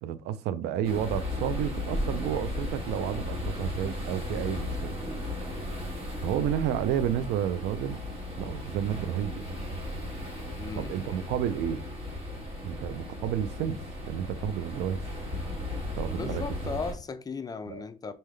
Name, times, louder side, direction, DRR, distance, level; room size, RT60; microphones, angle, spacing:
voice 1, 0.0-5.0 6.2-8.0 8.4-9.5 10.7-11.9 12.6-15.0 16.0-16.4 17.7-17.8, right 10 dB, 80° right, 0.4 m, -31 dB
sound 1, 0.8-16.9, left 1 dB, 35° right, 1.7 m, -35 dB
voice 2, 10.6-11.3 16.1-18.1, left 4 dB, 20° left, 0.5 m, -37 dB
4.0 x 3.7 x 3.2 m
cardioid pair, 110°, 17 cm